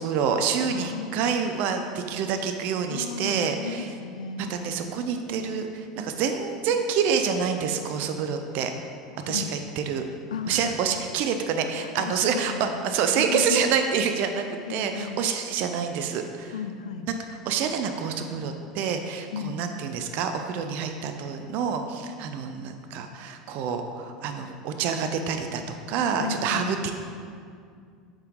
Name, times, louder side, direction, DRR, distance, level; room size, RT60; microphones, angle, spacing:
voice 1, 0.0-3.9 4.4-8.7 9.3-10.0 10.5-16.5 17.5-26.9, right 6 dB, 55° right, 6 dB, 0.5 m, -27 dB
voice 2, 0.7-1.3 2.9-4.6 9.2-9.5 10.3-10.8 11.8-12.8 13.1-13.6 14.7-15.2 16.5-17.1 19.3-19.6 26.2-26.8, left 6 dB, 90° left, 9 dB, 0.4 m, -34 dB
7.4 x 4.7 x 3.7 m, 2.2 s
hypercardioid pair, 90°, 4 cm